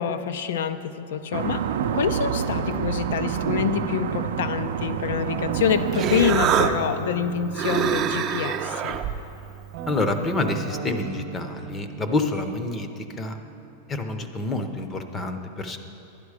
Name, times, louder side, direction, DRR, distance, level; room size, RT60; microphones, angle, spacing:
voice 1, 0.0-9.0, left 8 dB, 75° left, 11 dB, 0.6 m, -26 dB
sound 1, 1.3-6.7, right 8 dB, 75° right, 0.5 m, -28 dB
Guitar, 5.3-9.0 9.7-14.5, right 8 dB, 60° right, 0.9 m, -38 dB
Human voice, 5.5-10.7, right 8 dB, 30° right, 0.5 m, -27 dB
voice 2, 9.9-12.9 13.2-13.4 13.9-15.8, left 2 dB, 15° left, 7 dB, 0.7 m, -27 dB
11.0 x 10.5 x 4.9 m, 2.7 s
supercardioid pair, 155°, 0 cm